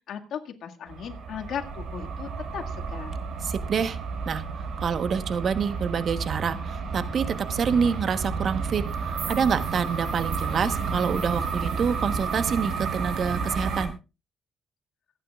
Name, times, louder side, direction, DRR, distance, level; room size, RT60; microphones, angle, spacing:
voice 1, 0.1-3.2, left 8 dB, 70° left, 3 dB, 1.9 m, -37 dB
sound 1, 0.9-13.9, right 5 dB, 75° right, 5.1 m, -31 dB
voice 2, 3.4-4.0 4.3-4.4 4.8-13.9, right 6 dB, 55° right, 11 dB, 1.1 m, -27 dB
26.5 x 9.6 x 2.4 m, 0.29 s
cardioid pair, 90°, 0 cm